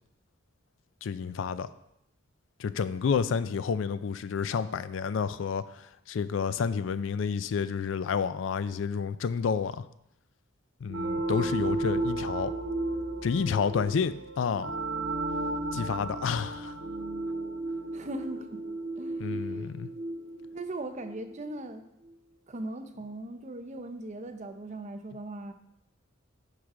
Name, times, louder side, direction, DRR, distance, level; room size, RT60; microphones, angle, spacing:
voice 1, 1.0-1.7 2.6-9.9 10.8-12.5 13.2-14.7 15.7-16.8 19.2-19.9, left 6 dB, 70° left, 14 dB, 0.4 m, -30 dB
sound 1, 10.9-21.3, right 2 dB, 60° right, 1.4 m, -34 dB
voice 2, 17.9-18.6 19.0-19.6 20.5-21.9 22.5-25.5, right 2 dB, 35° right, 7 dB, 0.6 m, -39 dB
9.7 x 4.8 x 3.7 m, 0.81 s
head